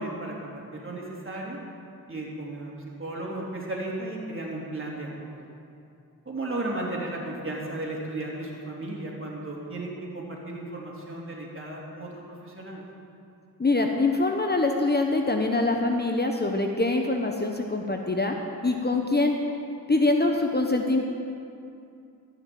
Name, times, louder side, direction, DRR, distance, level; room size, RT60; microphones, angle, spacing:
voice 1, 0.0-1.6 2.1-2.7 3.0-5.5 6.2-12.8, right 2 dB, 35° right, -3 dB, 3.4 m, -35 dB
voice 2, 13.6-18.4 18.6-19.4 19.9-21.0, left 2 dB, 25° left, 3 dB, 1.1 m, -24 dB
14.5 x 6.0 x 8.7 m, 2.6 s
cardioid pair, 50°, 36 cm